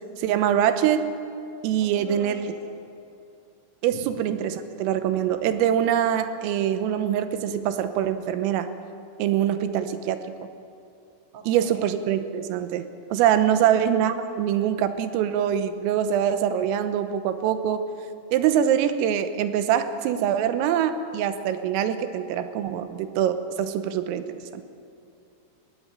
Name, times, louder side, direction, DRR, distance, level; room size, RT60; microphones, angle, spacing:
voice 1, 0.2-1.2 1.6-2.5 3.8-8.7 9.2-10.2 11.5-17.8 18.3-24.6, right 9 dB, 85° right, 10 dB, 3.6 m, -24 dB
voice 2, 1.8-2.7 3.9-4.0 11.3-11.9 13.5-13.8, right 4 dB, 65° right, 2 dB, 1.4 m, -42 dB
20.0 x 16.0 x 8.9 m, 2.6 s
omnidirectional pair, 6.0 m